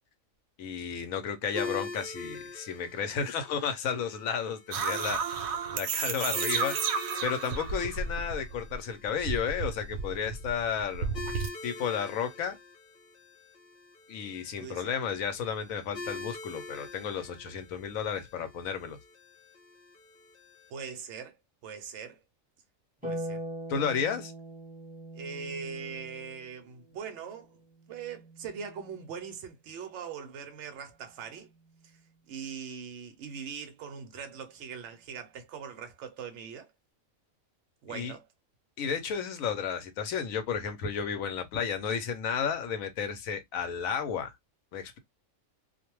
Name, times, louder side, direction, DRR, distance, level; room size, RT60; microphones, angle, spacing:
voice 1, 0.6-5.5 5.7-11.2 11.6-12.6 14.1-19.0 23.7-24.3 37.9-38.1 38.8-44.3 44.7-45.0, left 7 dB, 80° left, 1.0 m, -33 dB
sound 1, 1.5-20.7, left 3 dB, 55° left, 0.7 m, -45 dB
sound 2, 4.7-8.7 9.0-11.5, right 5 dB, 90° right, 1.0 m, -32 dB
voice 2, 14.4-14.9 20.7-21.4 21.6-22.2 23.1-23.4 25.1-27.6 27.9-31.5 31.8-32.0 32.3-36.7 37.8-38.3, right 6 dB, 65° right, 0.9 m, -41 dB
Harp, 23.0-29.5 31.2-32.2, right 1 dB, 5° right, 1.0 m, -43 dB
2.5 x 2.1 x 2.9 m
omnidirectional pair, 1.4 m